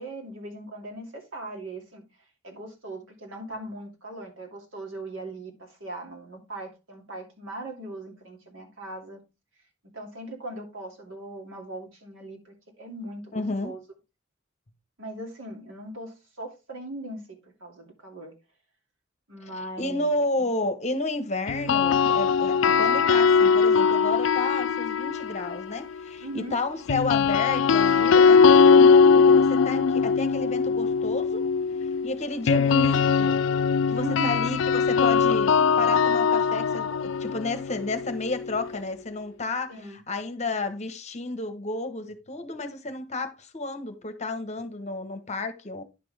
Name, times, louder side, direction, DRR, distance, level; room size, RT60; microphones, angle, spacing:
voice 1, 0.0-2.0 2.4-9.2 9.8-13.8 15.0-18.3 19.3-20.1 20.4-20.5 26.2-26.6 33.9-34.6 39.7-40.0, right 1 dB, 75° right, 2.6 m, -39 dB
voice 2, 13.3-13.7 19.5-31.5 32.0-33.4 33.9-45.8, left 2 dB, 35° left, 1.0 m, -31 dB
sound 1, 21.5-25.7 26.9-38.8, left 5 dB, 65° left, 0.4 m, -21 dB
10.0 x 6.1 x 3.4 m
head